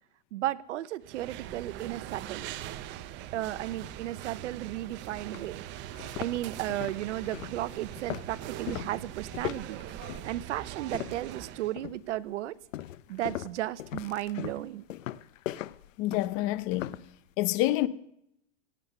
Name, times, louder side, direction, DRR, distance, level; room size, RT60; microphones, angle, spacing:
voice 1, 0.3-2.5 3.3-5.7 6.2-9.9 10.2-12.6 13.1-14.8, right 14 dB, 70° right, 0.9 m, -34 dB
sound 1, 1.0-11.8, right 12 dB, 30° right, 0.8 m, -42 dB
sound 2, 4.7-4.8 5.3-5.5 5.9-11.4 11.8-12.2 12.7-17.1, left 13 dB, 85° left, 0.8 m, -39 dB
voice 2, 16.0-17.0 17.4-17.9, left 16 dB, 35° left, 0.8 m, -27 dB
17.0 x 9.9 x 6.8 m
supercardioid pair, 145°, 38 cm